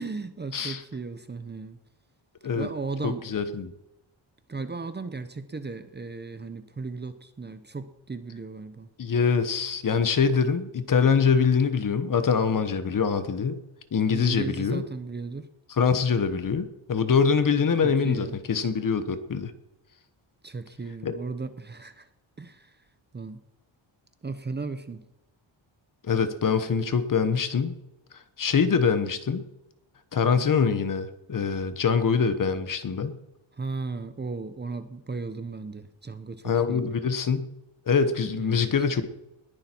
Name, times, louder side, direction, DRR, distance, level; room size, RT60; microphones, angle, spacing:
voice 1, 0.0-1.8 2.5-3.2 4.5-8.9 14.1-15.5 17.8-18.3 20.4-22.0 22.4-22.7 23.1-23.4 24.2-25.0 33.6-36.9 38.4-38.7, right 4 dB, 20° right, 10 dB, 0.9 m, -36 dB
voice 2, 0.5-0.8 2.4-2.7 3.0-3.7 9.0-13.6 13.9-14.8 15.7-19.5 21.0-21.2 26.0-27.8 28.4-29.5 30.1-33.2 36.4-37.5 37.9-39.1, left 6 dB, 40° left, 11 dB, 1.2 m, -24 dB
20.5 x 11.0 x 4.6 m, 0.90 s
wide cardioid pair, 165°, 48 cm